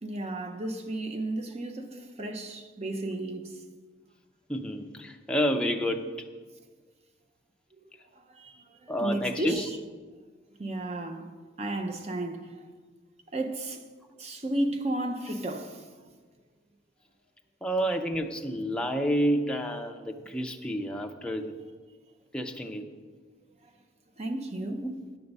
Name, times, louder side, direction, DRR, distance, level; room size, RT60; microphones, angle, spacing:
voice 1, 0.0-3.6 7.8-7.9 8.1-9.8 10.6-11.3 11.6-12.7 13.3-13.8 14.2-15.9 23.6-23.7 24.2-24.9, right 1 dB, 30° right, 0.7 m, -33 dB
voice 2, 4.5-6.1 8.9-9.7 17.6-21.6 22.3-22.9, equal, 5° left, 0.5 m, -29 dB
9.3 x 7.0 x 5.4 m
head